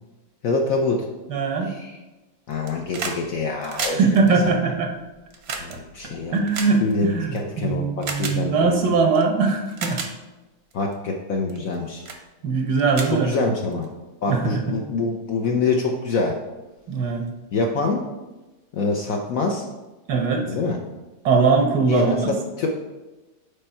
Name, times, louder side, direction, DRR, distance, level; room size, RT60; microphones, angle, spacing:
voice 1, 0.4-1.1 1.6-2.0 2.5-4.0 4.5-4.6 5.6-6.4 6.8-8.8 10.7-12.0 13.1-13.9 14.2-16.4 17.5-18.0 18.7-19.6 20.4-20.8 21.9-22.7, left 3 dB, 65° left, 1 dB, 0.9 m, -25 dB
voice 2, 1.3-1.7 3.9-4.9 6.3-10.0 12.4-13.3 14.3-14.8 16.9-17.2 20.1-20.4 21.2-22.3, right 4 dB, 90° right, 3 dB, 1.5 m, -21 dB
sound 1, 2.5-3.2 3.5-7.4 8.0-8.4 9.2-9.3 9.7-10.1 10.7-10.9 11.5-11.7 12.0-12.2 12.6-12.7 12.9-13.9 15.0-15.1, right 4 dB, 55° right, 0.8 m, -32 dB
5.3 x 4.4 x 4.3 m, 1.1 s
omnidirectional pair, 1.8 m